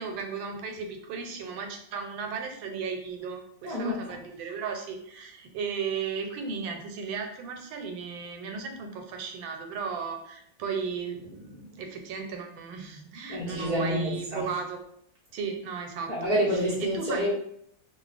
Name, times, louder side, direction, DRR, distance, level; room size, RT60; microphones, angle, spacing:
voice 1, 0.0-14.8 15.3-16.1 16.8-17.3, right 5 dB, 90° right, 5 dB, 1.3 m, -35 dB
voice 2, 3.6-4.2 13.3-14.5 16.1-17.3, equal, 65° left, -8 dB, 0.4 m, -28 dB
3.0 x 2.4 x 3.2 m, 0.69 s
omnidirectional pair, 2.1 m